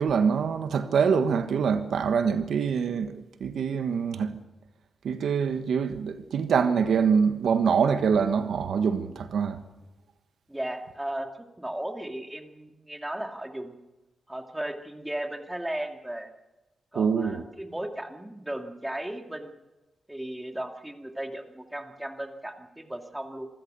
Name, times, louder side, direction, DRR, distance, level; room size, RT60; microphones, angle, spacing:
voice 1, 0.0-4.4 5.0-9.6 16.9-17.4, right 6 dB, 80° right, 1.4 m, -25 dB
voice 2, 10.5-13.7 14.3-16.3 16.9-19.5 20.1-23.5, right 1 dB, 10° right, 2.4 m, -36 dB
25.5 x 15.5 x 6.9 m
cardioid pair, 85°, 0 cm